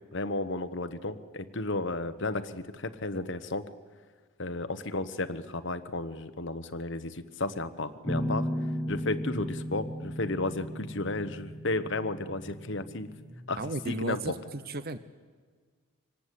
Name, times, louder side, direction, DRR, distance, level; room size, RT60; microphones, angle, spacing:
voice 1, 0.1-3.6 4.4-8.5 8.9-13.1 13.5-14.2, left 2 dB, 55° left, 10 dB, 1.2 m, -33 dB
Guitar, 8.1-13.3, equal, ahead, 2.2 m, -35 dB
voice 2, 13.6-15.0, right 2 dB, 45° right, 12 dB, 0.8 m, -34 dB
25.5 x 18.5 x 8.4 m, 1.5 s
head